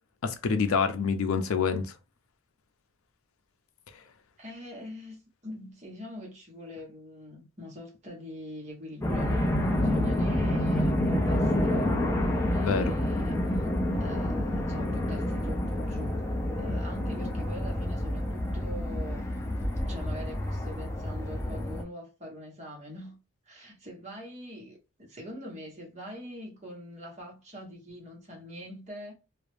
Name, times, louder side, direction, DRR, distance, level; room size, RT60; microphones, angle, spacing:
voice 1, 0.2-1.9 12.5-12.8, left 5 dB, 85° left, 0.5 m, -27 dB
voice 2, 4.4-16.2 16.6-19.3 19.9-23.2 23.5-29.1, equal, 35° right, 0.9 m, -43 dB
sound 1, 9.0-21.8, left 1 dB, 15° left, 0.4 m, -28 dB
2.3 x 2.0 x 3.1 m
head